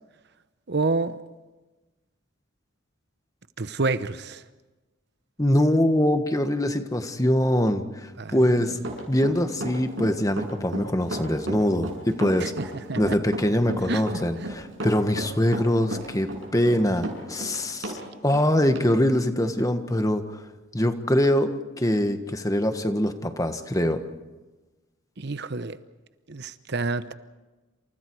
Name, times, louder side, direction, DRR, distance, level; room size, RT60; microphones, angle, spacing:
voice 1, 0.7-1.2 3.6-4.4 8.2-8.8 12.4-13.2 13.9-14.0 14.4-14.5 25.2-25.8 26.3-27.1, right 3 dB, 60° right, 12 dB, 0.9 m, -29 dB
voice 2, 5.4-8.8 9.1-12.5 13.0-18.0 18.2-20.4 20.7-24.0, left 1 dB, 15° left, 8 dB, 1.5 m, -23 dB
Run, 8.8-18.0 18.3-18.4 18.8-18.9, right 1 dB, 75° right, 6.7 m, -33 dB
28.5 x 28.0 x 4.8 m, 1.2 s
head